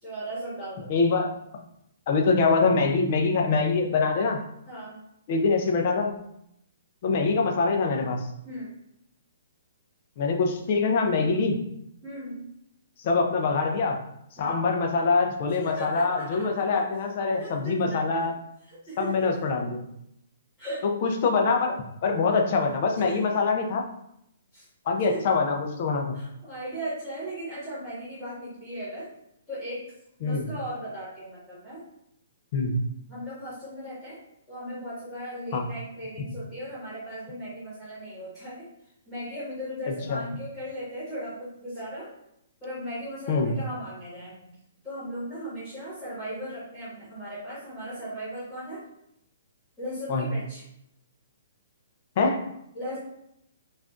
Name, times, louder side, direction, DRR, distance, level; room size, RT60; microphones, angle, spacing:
voice 1, 0.0-0.9 4.7-5.0 8.4-8.7 12.0-12.4 14.4-14.6 15.6-16.6 17.4-18.3 18.7-19.3 20.6-20.8 22.9-23.2 24.5-24.7 25.1-25.2 26.1-29.1 29.5-29.8 30.2-31.8 33.1-34.2 34.5-38.7 39.1-42.1 42.6-44.5 44.8-48.8 49.8-50.6 52.7-53.0, equal, 10° left, -11 dB, 1.4 m, -37 dB
voice 2, 0.9-1.3 2.1-4.4 5.3-6.2 7.0-8.3 10.2-11.6 13.0-14.0 14.4-18.3 19.0-19.8 21.0-21.8 22.0-23.8 24.9-26.2 30.2-30.5 32.5-32.8 35.5-35.6 40.1-40.2 43.3-43.5 50.1-50.3 52.2-52.4, left 4 dB, 35° left, 2 dB, 0.5 m, -24 dB
5.7 x 2.5 x 2.5 m, 0.78 s
hypercardioid pair, 175°, 0 cm